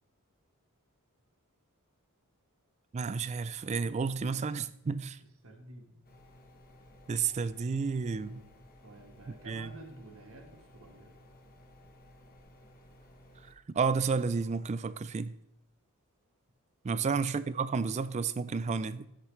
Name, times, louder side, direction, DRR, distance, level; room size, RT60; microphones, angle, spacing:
voice 1, 2.9-5.2 7.1-8.4 9.5-9.7 13.7-15.3 16.8-19.1, right 5 dB, 30° right, 0.3 m, -31 dB
voice 2, 5.4-6.0 8.1-8.5 8.8-11.1, right 1 dB, 65° right, 1.3 m, -51 dB
sound 1, 6.0-13.5, left 1 dB, 40° left, 1.1 m, -57 dB
13.0 x 6.7 x 3.2 m
head